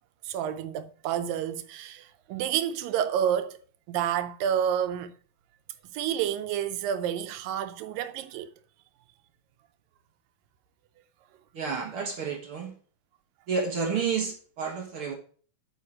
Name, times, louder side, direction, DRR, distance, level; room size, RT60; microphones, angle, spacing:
voice 1, 0.2-3.6 3.9-5.1 5.9-8.5, right 9 dB, 85° right, 2.4 m, -29 dB
voice 2, 11.5-12.7 13.5-15.1, right 5 dB, 60° right, 1.4 m, -30 dB
8.5 x 5.6 x 4.8 m
omnidirectional pair, 4.1 m